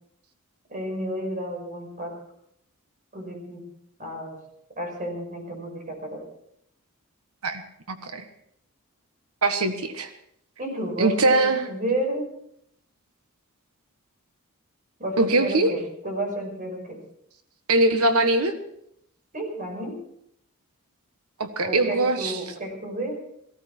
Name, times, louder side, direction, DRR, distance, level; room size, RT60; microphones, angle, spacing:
voice 1, 0.7-2.2 3.1-3.7 4.0-4.4 4.8-6.2 10.6-12.3 15.0-17.0 19.3-20.0 21.6-23.2, right 1 dB, 40° right, 2 dB, 5.5 m, -31 dB
voice 2, 7.9-8.2 9.4-10.1 11.0-11.6 15.2-15.7 17.7-18.5 21.4-22.4, right 2 dB, 80° right, 8 dB, 1.4 m, -22 dB
18.0 x 15.5 x 4.5 m, 0.71 s
head